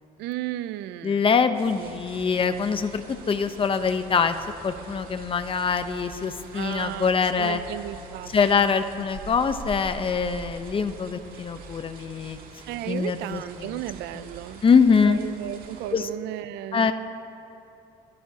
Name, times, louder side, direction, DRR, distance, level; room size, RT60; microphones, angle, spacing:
voice 1, 0.2-1.3 1.8-1.9 6.5-8.8 12.7-14.6 14.9-16.9, right 13 dB, 85° right, 15 dB, 0.5 m, -35 dB
voice 2, 1.0-4.3 4.6-7.6 8.3-12.4 12.9-13.8 14.2-14.3 14.6-15.2 15.9-16.1 16.7-16.9, left 5 dB, 30° left, 9 dB, 0.8 m, -23 dB
sound 1, 1.5-15.9, right 4 dB, 60° right, 2.1 m, -44 dB
25.0 x 15.0 x 2.9 m, 2.8 s
cardioid pair, 110°, 17 cm